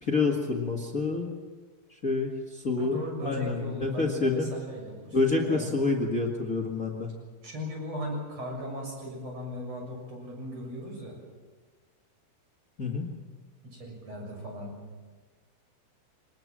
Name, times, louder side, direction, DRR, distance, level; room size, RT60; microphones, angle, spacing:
voice 1, 0.1-1.3 2.0-2.3 2.6-4.5 5.1-7.1 12.8-13.0, left 3 dB, 40° left, 1 dB, 1.1 m, -27 dB
voice 2, 2.8-5.7 7.4-11.1 13.6-14.7, equal, 35° right, 0 dB, 8.0 m, -38 dB
25.0 x 20.0 x 7.5 m, 1.4 s
omnidirectional pair, 4.9 m